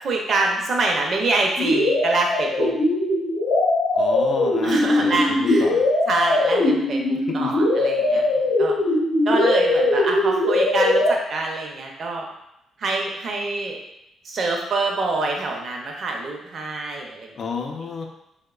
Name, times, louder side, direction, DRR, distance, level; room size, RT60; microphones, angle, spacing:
voice 1, 0.0-2.8 4.6-5.7 6.1-8.7 9.3-12.3 12.8-13.8 14.2-17.3, right 3 dB, 55° right, 1 dB, 0.5 m, -25 dB
sound 1, 1.6-11.1, left 2 dB, 80° left, 0.7 m, -20 dB
voice 2, 3.9-5.8 7.1-7.6 8.1-8.3 17.3-18.1, left 5 dB, 50° left, 2 dB, 0.4 m, -32 dB
2.9 x 2.0 x 2.3 m, 0.82 s
cardioid pair, 90°, 0 cm